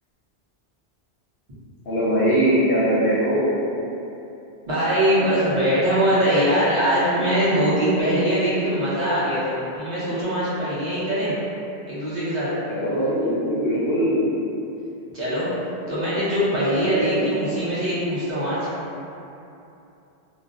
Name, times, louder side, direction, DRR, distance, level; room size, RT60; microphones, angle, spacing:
voice 1, 1.9-3.5 12.7-14.3 16.8-17.4, equal, 65° left, -9 dB, 0.7 m, -21 dB
voice 2, 4.7-11.4 11.9-12.5 15.1-15.5 15.9-18.7, equal, 45° right, -11 dB, 0.9 m, -22 dB
2.4 x 2.0 x 2.5 m, 2.8 s
omnidirectional pair, 1.1 m